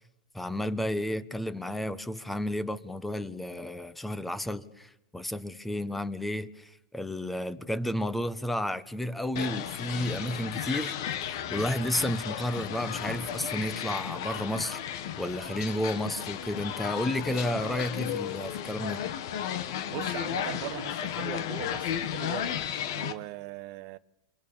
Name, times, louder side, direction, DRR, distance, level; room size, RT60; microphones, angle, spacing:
voice 1, 0.3-10.9 11.2-14.8 15.2-19.0, left 1 dB, 5° left, 1.3 m, -32 dB
sound 1, 9.4-23.1, left 10 dB, 60° left, 2.1 m, -34 dB
voice 2, 19.9-22.6 22.9-24.0, right 19 dB, 45° right, 1.3 m, -39 dB
27.5 x 26.0 x 7.4 m
supercardioid pair, 140°, 2 cm